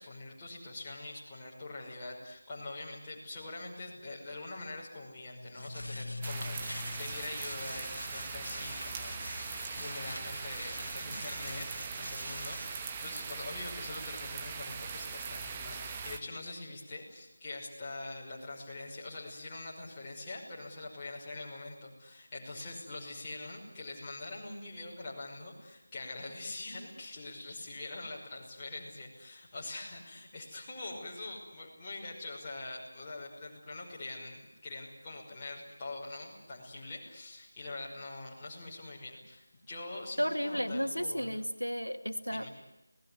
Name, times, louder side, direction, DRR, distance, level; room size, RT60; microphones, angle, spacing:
voice 1, 0.0-9.2 9.7-41.4 42.3-42.5, left 2 dB, 15° left, -5 dB, 5.7 m, -44 dB
sound 1, 5.3-12.9, left 1 dB, 65° left, 2.6 m, -43 dB
sound 2, 6.2-16.2, right 5 dB, 15° right, 1.3 m, -41 dB
voice 2, 40.2-42.5, equal, 90° left, 8 dB, 2.3 m, -33 dB
25.5 x 19.0 x 9.6 m, 0.92 s
figure-of-eight pair, 165°, 0 cm